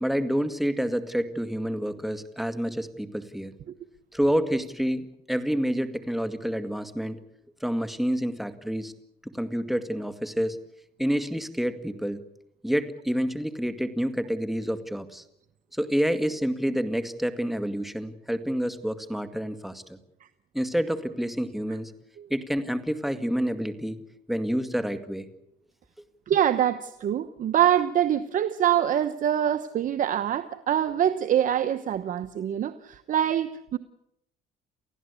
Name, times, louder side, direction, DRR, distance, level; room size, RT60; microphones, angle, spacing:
voice 1, 0.0-3.5 4.1-7.2 7.6-8.9 9.2-10.6 11.0-12.2 12.6-15.2 15.8-20.0 20.5-21.9 22.3-24.0 24.3-25.3, equal, ahead, 9 dB, 2.0 m, -28 dB
voice 2, 26.3-33.8, right 10 dB, 50° right, 11 dB, 1.0 m, -24 dB
29.5 x 15.5 x 8.3 m, 0.80 s
cardioid pair, 110°, 17 cm